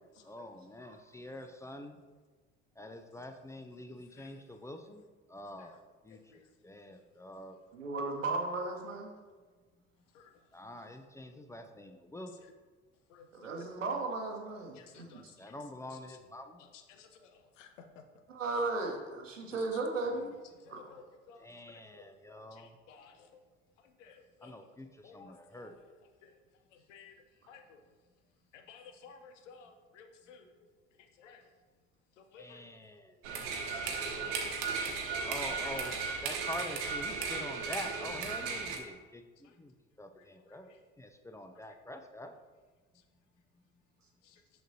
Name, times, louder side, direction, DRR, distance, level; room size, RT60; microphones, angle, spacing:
voice 1, 0.2-2.0 2.8-5.0 5.3-7.6 10.5-12.4 15.4-16.6 21.4-22.7 24.4-25.8 32.4-33.2 35.2-36.0 36.2-42.4, left 1 dB, 10° left, 6 dB, 0.3 m, -46 dB
voice 2, 7.7-9.2 13.3-15.3 18.3-20.3 20.7-20.9, right 3 dB, 90° right, 2 dB, 0.9 m, -36 dB
voice 3, 14.8-15.5 15.9-16.2 16.7-18.0 18.5-18.6 19.5-19.8 20.1-20.3 20.6-21.5 21.9-23.3 24.0-24.5 25.0-25.9 26.2-26.4 26.9-27.1 27.5-27.8 28.5-30.5 31.2-31.4 32.2-32.6 33.8-34.8 35.5-35.7 37.2-37.4 44.2-44.4, left 6 dB, 75° left, 6 dB, 0.8 m, -56 dB
sound 1, 33.2-38.8, right 5 dB, 65° right, 1.0 m, -35 dB
6.3 x 6.1 x 2.7 m, 1.4 s
hypercardioid pair, 65°, 37 cm